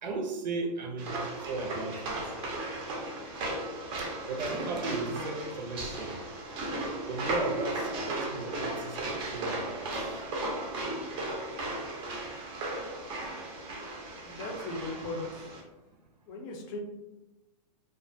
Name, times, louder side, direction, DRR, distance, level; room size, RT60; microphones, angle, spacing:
voice 1, 0.0-2.3 4.0-6.2 7.1-10.2, right 3 dB, 85° right, 2 dB, 0.6 m, -36 dB
sound 1, 1.0-15.6, right 2 dB, 25° right, 0.5 m, -36 dB
voice 2, 14.2-15.5 16.3-16.8, left 2 dB, 35° left, 0 dB, 0.5 m, -38 dB
2.3 x 2.1 x 2.5 m, 1.0 s
hypercardioid pair, 140°, 21 cm